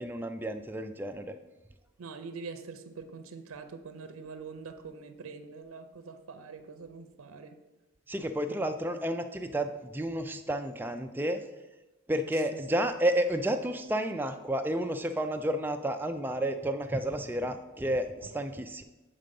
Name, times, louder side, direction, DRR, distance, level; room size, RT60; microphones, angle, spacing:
voice 1, 0.0-1.3 8.1-11.4 12.1-18.8, right 1 dB, 10° right, 6 dB, 0.3 m, -31 dB
voice 2, 2.0-7.6 8.5-8.7 12.3-12.6, right 4 dB, 85° right, 8 dB, 0.6 m, -44 dB
7.7 x 3.7 x 5.3 m, 1.1 s
head